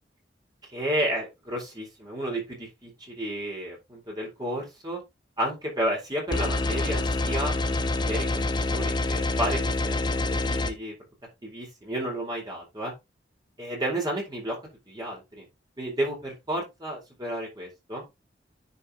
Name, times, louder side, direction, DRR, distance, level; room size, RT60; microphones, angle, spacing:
voice 1, 0.7-5.0 5.4-7.5 8.1-8.4 8.7-10.9 11.4-12.9 13.6-14.6 14.9-15.4 15.8-18.0, right 1 dB, 25° right, -2 dB, 4.3 m, -32 dB
sound 1, 6.3-10.7, left 2 dB, 25° left, 0.8 m, -26 dB
10.0 x 6.2 x 2.9 m, 0.22 s
head